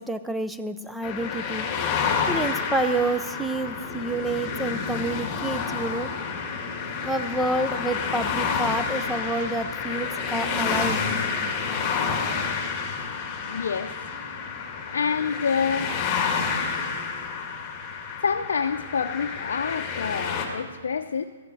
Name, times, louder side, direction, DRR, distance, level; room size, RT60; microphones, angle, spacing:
voice 1, 0.0-1.7 2.3-6.1 7.0-11.0, right 2 dB, 5° right, 9 dB, 0.5 m, -28 dB
sound 1, 1.0-20.4, left 5 dB, 25° left, 2.2 m, -29 dB
voice 2, 13.5-13.9 14.9-16.0 18.2-21.2, left 6 dB, 80° left, 4 dB, 0.5 m, -27 dB
14.0 x 6.6 x 8.3 m, 1.5 s
hypercardioid pair, 150°, 0 cm